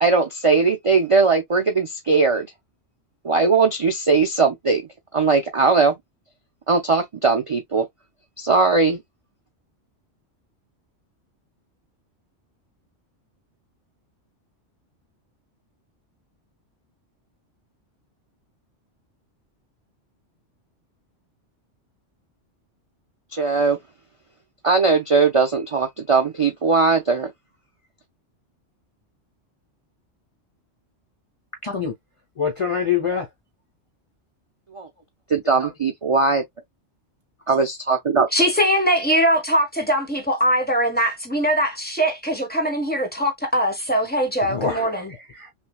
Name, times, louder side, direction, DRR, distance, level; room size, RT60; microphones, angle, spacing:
voice 1, 0.0-2.5 3.2-4.8 5.1-5.9 6.7-7.9 8.4-9.0 23.3-23.8 24.6-27.3 34.7-34.9 35.3-36.4 37.5-38.3, right 4 dB, 35° right, 0.5 m, -19 dB
voice 2, 31.6-31.9 32.4-33.3 35.6-35.7 44.4-45.1, left 6 dB, 35° left, 0.6 m, -25 dB
voice 3, 38.3-45.1, equal, 10° left, 1.2 m, -21 dB
5.9 x 2.2 x 2.2 m
omnidirectional pair, 1.2 m